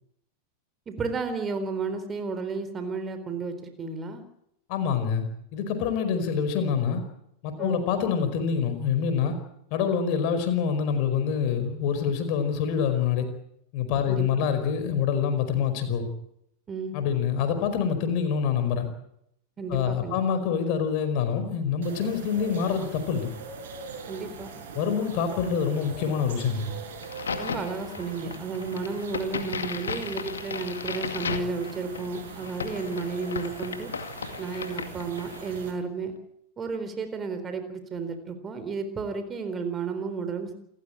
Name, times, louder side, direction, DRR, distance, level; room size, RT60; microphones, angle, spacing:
voice 1, 0.9-4.3 7.6-7.8 14.1-14.5 16.7-17.0 19.6-20.2 24.1-24.5 27.4-33.9 34.4-36.1 36.6-40.5, right 4 dB, 20° right, 9 dB, 4.0 m, -32 dB
voice 2, 4.7-7.0 7.4-9.4 9.7-13.3 13.7-16.1 16.9-18.9 19.7-23.3 24.7-26.7, left 7 dB, 45° left, 9 dB, 5.0 m, -26 dB
sound 1, 21.8-35.7, right 5 dB, 60° right, 6.3 m, -42 dB
Crack, 27.0-35.6, left 6 dB, 70° left, 2.2 m, -36 dB
28.5 x 15.0 x 8.8 m, 0.78 s
figure-of-eight pair, 90°, 0 cm